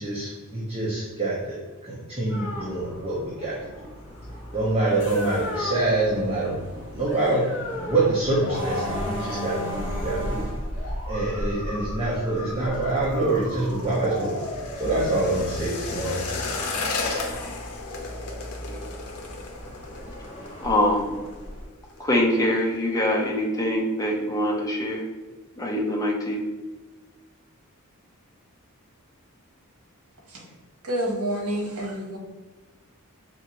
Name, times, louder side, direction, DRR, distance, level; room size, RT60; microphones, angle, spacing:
voice 1, 0.0-3.7 4.5-6.6 6.9-10.5 11.1-14.4 14.8-16.2, right 2 dB, 25° right, -6 dB, 0.8 m, -26 dB
sound 1, 2.3-21.6, equal, 60° left, 1.1 m, -35 dB
sound 2, 12.4-21.4 21.7-22.0 22.3-22.8 23.2-23.3, left 4 dB, 85° left, 0.6 m, -35 dB
voice 2, 17.9-18.3 18.7-19.0 20.6-21.2 22.0-25.1 25.6-26.5, left 1 dB, 15° left, -1 dB, 0.5 m, -24 dB
voice 3, 30.8-32.2, right 1 dB, 85° right, 0 dB, 1.1 m, -28 dB
4.4 x 2.5 x 2.9 m, 1.3 s
head